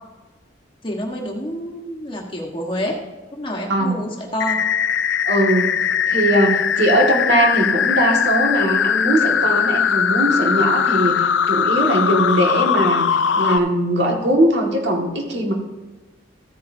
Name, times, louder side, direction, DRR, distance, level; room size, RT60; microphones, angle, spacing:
voice 1, 0.8-3.0 3.3-4.6, equal, 25° left, 0 dB, 1.5 m, -28 dB
sound 1, 4.4-13.6, left 7 dB, 70° left, 0.5 m, -20 dB
voice 2, 5.2-15.5, right 1 dB, 60° right, 0 dB, 2.0 m, -20 dB
14.5 x 9.6 x 2.8 m, 1.2 s
head